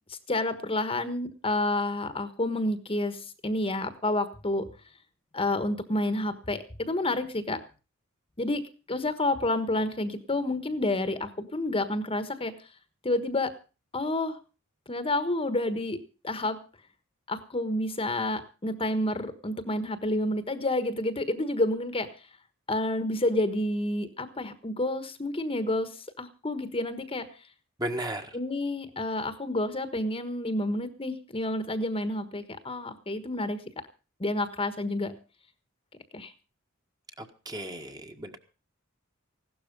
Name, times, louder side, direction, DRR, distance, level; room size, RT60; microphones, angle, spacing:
voice 1, 0.1-4.6 5.3-7.6 8.4-8.6 8.9-12.5 13.0-13.5 13.9-14.4 14.9-16.0 16.2-16.6 17.3-22.1 22.7-25.9 26.2-27.3 28.3-33.6 34.2-35.1 36.1-36.3, left 1 dB, 25° left, 11 dB, 1.3 m, -29 dB
voice 2, 27.8-28.3 37.2-38.4, right 1 dB, 20° right, 5 dB, 1.6 m, -35 dB
16.5 x 12.5 x 5.3 m, 0.34 s
head